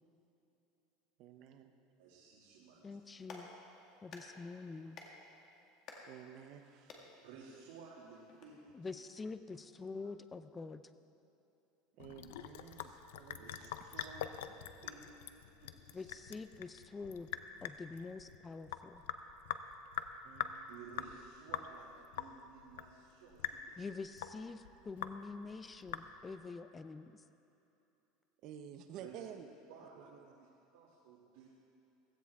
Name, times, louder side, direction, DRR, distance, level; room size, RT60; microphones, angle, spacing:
voice 1, 1.2-1.7 6.0-7.0 12.0-13.7 14.0-14.1 20.2-20.8 28.4-29.5 30.0-30.3, right 9 dB, 45° right, 7 dB, 0.7 m, -52 dB
voice 2, 2.0-3.0 7.2-8.9 13.3-14.5 14.8-16.2 20.7-23.8 29.0-29.3 29.7-30.5 30.7-31.5, right 5 dB, 85° right, -6 dB, 2.3 m, -56 dB
voice 3, 2.8-3.5 4.0-5.0 8.7-10.8 15.9-17.3 17.6-19.0 23.8-27.2, left 4 dB, 15° left, 11 dB, 0.4 m, -46 dB
Clapping, 3.0-8.5, left 3 dB, 40° left, 1.8 m, -56 dB
Sink (filling or washing) / Drip, 12.0-26.5, left 11 dB, 85° left, 0.6 m, -45 dB
16.0 x 15.5 x 3.6 m, 2.9 s
supercardioid pair, 160°, 0 cm